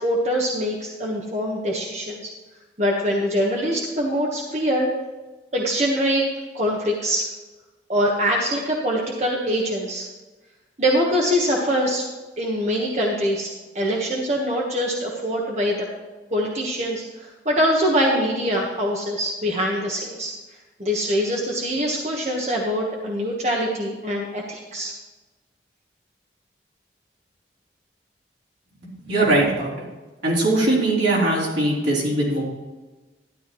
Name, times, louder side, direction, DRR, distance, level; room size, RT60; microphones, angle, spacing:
voice 1, 0.0-2.3 2.8-4.9 5.5-6.3 6.5-7.3 7.9-10.1 10.8-12.1 12.4-15.9 16.3-20.3 20.8-24.9, equal, 40° right, -2 dB, 1.3 m, -23 dB
voice 2, 29.0-29.7 30.2-32.4, right 2 dB, 85° right, -5 dB, 3.7 m, -20 dB
12.5 x 11.0 x 3.1 m, 1.2 s
head